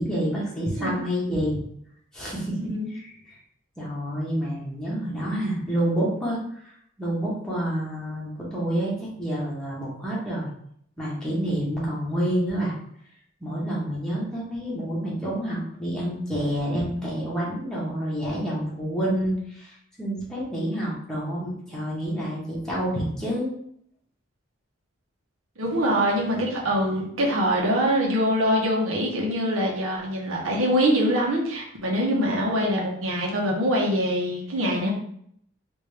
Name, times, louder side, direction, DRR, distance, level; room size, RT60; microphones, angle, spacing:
voice 1, 0.0-1.6 2.1-2.6 2.9-3.4 3.8-6.4 6.6-6.7 7.0-10.5 11.0-12.7 13.4-23.5, equal, 5° left, -7 dB, 1.0 m, -28 dB
voice 2, 2.5-2.9 25.6-34.9, equal, 80° right, -2 dB, 1.0 m, -24 dB
3.3 x 2.6 x 3.3 m, 0.68 s
head